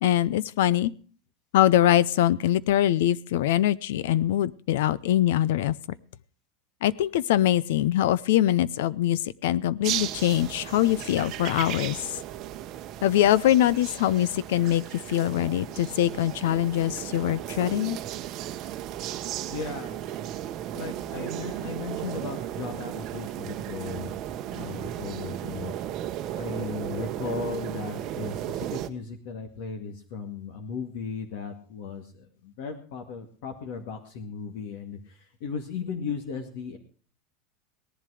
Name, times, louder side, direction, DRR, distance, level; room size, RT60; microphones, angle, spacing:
voice 1, 0.0-0.9 1.5-5.7 6.8-12.1 13.0-18.0, left 12 dB, 75° left, 21 dB, 0.7 m, -23 dB
sound 1, 9.8-28.9, right 12 dB, 35° right, 0.9 m, -35 dB
voice 2, 19.5-20.1 20.7-25.7 26.3-36.8, left 5 dB, 60° left, 3 dB, 2.2 m, -36 dB
18.0 x 11.0 x 4.9 m, 0.41 s
supercardioid pair, 175°, 0 cm